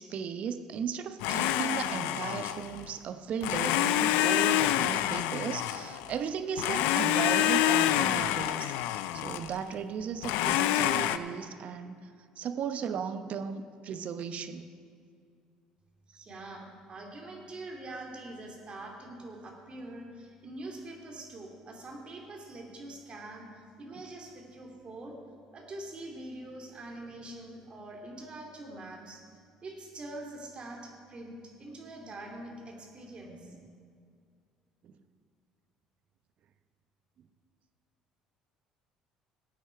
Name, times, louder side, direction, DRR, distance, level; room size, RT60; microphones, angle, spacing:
voice 1, 0.0-8.7 9.1-12.0 12.4-14.7 34.8-34.9, right 7 dB, 55° right, 10 dB, 0.8 m, -36 dB
Domestic sounds home sounds, 1.2-2.9 3.4-6.2 6.6-9.6 10.2-11.2, left 13 dB, 75° left, 0.4 m, -27 dB
voice 2, 16.1-25.2 25.5-29.2 29.6-33.5, right 2 dB, 40° right, 1 dB, 2.8 m, -44 dB
16.0 x 8.7 x 4.6 m, 2.2 s
hypercardioid pair, 65°, 3 cm